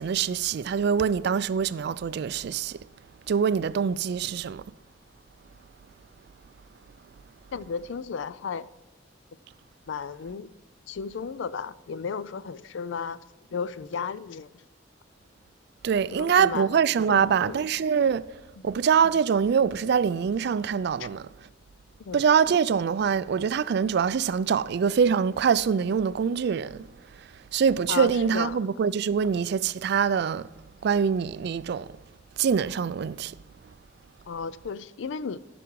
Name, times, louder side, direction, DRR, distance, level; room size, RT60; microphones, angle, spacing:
voice 1, 0.0-2.7 3.3-4.6 15.8-18.2 18.6-21.3 22.1-26.8 27.5-30.5 30.8-31.9 32.4-33.3, right 7 dB, 60° right, 0.3 m, -24 dB
voice 2, 7.5-8.7 9.9-10.5 10.9-13.2 13.5-14.6 16.1-16.8 17.1-17.6 18.6-18.7 21.0-21.1 22.0-22.2 27.9-28.7 34.3-35.4, left 5 dB, 75° left, 0.4 m, -34 dB
14.0 x 6.1 x 4.7 m
head